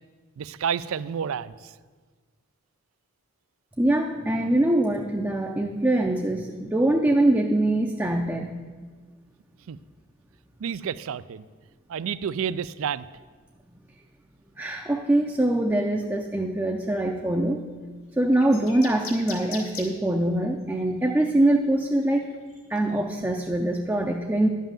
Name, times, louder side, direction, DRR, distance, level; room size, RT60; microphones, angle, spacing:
voice 1, 0.4-1.7 9.7-9.8 10.6-11.5 11.9-13.0, right 7 dB, 70° right, 17 dB, 0.4 m, -30 dB
voice 2, 3.8-8.6 14.6-17.6 18.2-22.3 22.7-24.5, right 1 dB, 10° right, 0 dB, 0.5 m, -23 dB
sound 1, 18.3-19.9 21.1-21.3 21.9-23.1, left 5 dB, 80° left, 1.7 m, -39 dB
11.5 x 5.5 x 7.3 m, 1.4 s
head